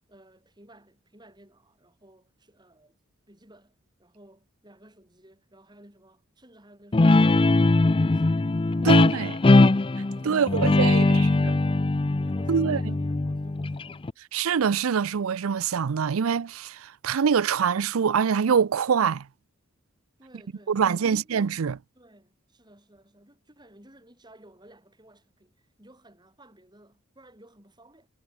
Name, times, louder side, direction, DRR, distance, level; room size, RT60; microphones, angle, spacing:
voice 1, 0.1-3.0 3.3-8.5 8.7-9.9 10.1-14.0 20.2-21.4 21.9-28.1, right 1 dB, 20° right, 5.9 m, -55 dB
Guitar, 6.9-14.1, left 2 dB, 25° left, 0.4 m, -21 dB
voice 2, 8.9-9.3 10.2-11.2 12.5-12.9 14.3-19.2 20.7-21.8, right 6 dB, 85° right, 0.5 m, -24 dB
head